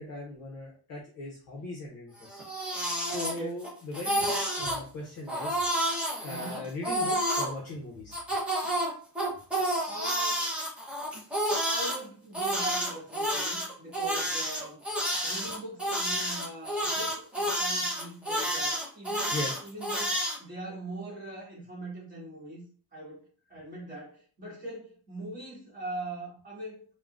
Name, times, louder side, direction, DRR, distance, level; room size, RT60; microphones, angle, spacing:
voice 1, 0.0-2.4 3.0-5.6 6.2-8.2 19.3-19.5, left 2 dB, 35° left, -3 dB, 0.7 m, -39 dB
Crying sobbing, 2.2-3.7 3.9-4.8 5.3-7.5 8.1-12.0 12.3-20.4, right 1 dB, 5° right, 0.6 m, -30 dB
voice 2, 3.2-3.6 6.2-6.6 9.9-10.5 11.6-22.6 22.9-26.9, right 1 dB, 20° right, -6 dB, 1.4 m, -41 dB
3.6 x 2.2 x 2.4 m, 0.42 s
cardioid pair, 175°, 45 cm